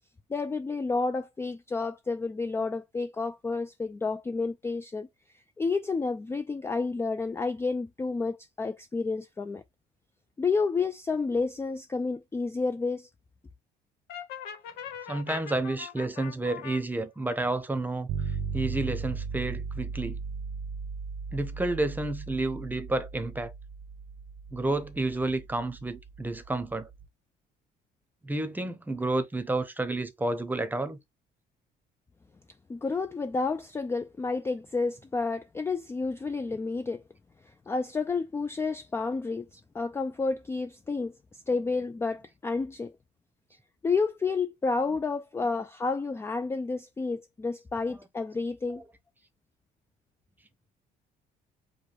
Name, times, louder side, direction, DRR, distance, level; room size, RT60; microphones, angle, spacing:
voice 1, 0.3-5.1 5.6-9.6 10.4-13.1 32.7-37.0 37.7-39.5 39.7-42.9 43.8-48.8, left 4 dB, 15° left, 0.3 m, -30 dB
Brass instrument, 14.1-16.8, left 8 dB, 90° left, 1.2 m, -41 dB
voice 2, 15.1-18.1 18.5-20.2 21.3-23.5 24.5-26.9 28.2-31.0, right 2 dB, 10° right, 0.8 m, -30 dB
sound 1, 18.1-27.1, right 5 dB, 75° right, 0.8 m, -37 dB
4.9 x 2.2 x 4.5 m
cardioid pair, 110°, 17 cm